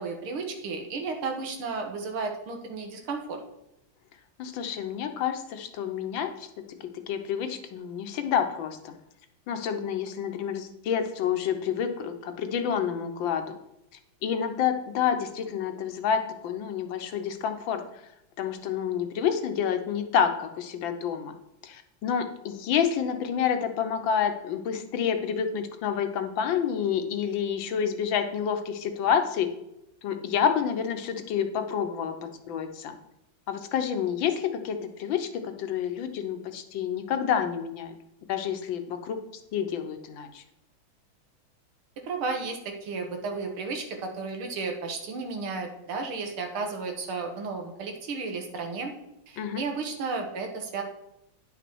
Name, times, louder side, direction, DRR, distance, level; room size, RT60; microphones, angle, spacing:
voice 1, 0.0-3.4 42.0-48.9 49.3-50.8, right 4 dB, 90° right, 4 dB, 2.2 m, -33 dB
voice 2, 4.4-6.5 7.1-9.0 9.5-13.5 14.2-17.8 18.4-21.3 21.6-29.5 30.0-33.0 33.5-38.0 38.3-39.2 39.5-40.4 49.4-49.6, left 8 dB, 70° left, 7 dB, 1.5 m, -28 dB
9.8 x 6.1 x 4.6 m, 0.84 s
omnidirectional pair, 2.3 m